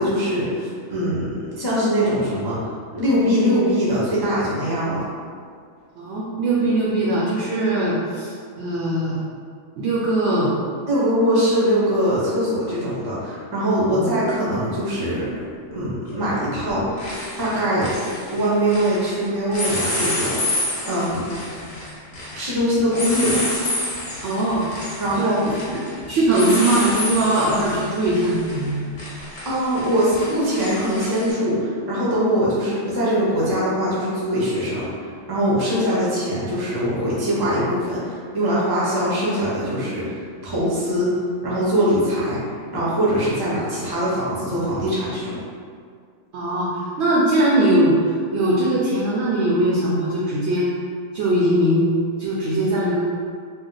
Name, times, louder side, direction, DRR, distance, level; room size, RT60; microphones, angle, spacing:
voice 1, 0.0-2.6 2.9-5.0 10.9-15.3 15.7-17.1 17.4-17.9 18.3-20.4 20.9-21.2 22.3-23.4 25.0-25.4 29.4-34.9 35.3-41.1 41.4-42.4 42.7-45.4, equal, 25° right, -8 dB, 0.6 m, -22 dB
voice 2, 6.0-9.2 9.8-10.6 13.9-14.1 24.2-24.6 25.2-25.3 25.7-25.8 26.1-28.8 46.3-50.7 51.1-51.9 52.2-53.0, right 1 dB, 65° right, -6 dB, 0.8 m, -20 dB
sound 1, 14.3-14.4 16.1-16.4 16.7-19.1 19.5-31.3, left 1 dB, 40° left, 0.8 m, -29 dB
2.6 x 2.1 x 3.8 m, 2.1 s
omnidirectional pair, 1.4 m